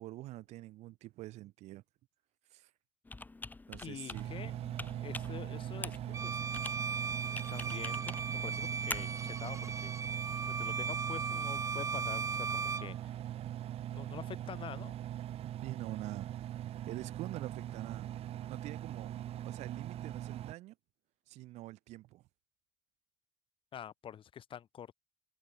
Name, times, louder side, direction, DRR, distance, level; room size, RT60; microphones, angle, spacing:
voice 1, 0.0-1.8 2.5-2.7 3.7-4.3 15.6-16.3 16.6-18.1 18.5-19.1 19.4-20.7 21.3-22.3, right 17 dB, 75° right, 2.9 m, -45 dB
Computer keyboard, 3.0-9.7, left 3 dB, 15° left, 5.4 m, -46 dB
voice 2, 3.8-4.5 5.0-6.4 7.5-9.9 10.4-13.1 13.9-14.9 23.7-24.9, left 9 dB, 50° left, 8.0 m, -46 dB
Engine, 4.1-20.5, right 12 dB, 60° right, 5.0 m, -41 dB
Bowed string instrument, 6.1-12.9, right 5 dB, 25° right, 3.2 m, -37 dB
cardioid pair, 110°, 11 cm